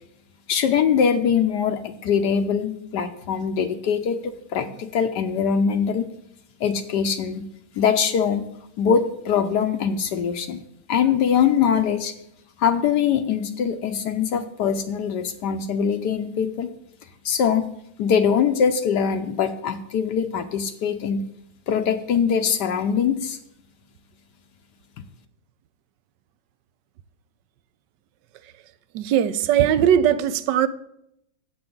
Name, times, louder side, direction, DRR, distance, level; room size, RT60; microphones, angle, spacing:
voice 1, 0.5-6.1 6.6-7.5 7.7-8.4 8.8-10.6 10.9-12.1 12.6-16.7 17.2-17.7 18.0-21.3 21.7-23.4, left 7 dB, 70° left, 1.2 m, -22 dB
voice 2, 28.9-30.7, right 10 dB, 75° right, 1.2 m, -19 dB
14.0 x 8.5 x 3.7 m
omnidirectional pair, 2.0 m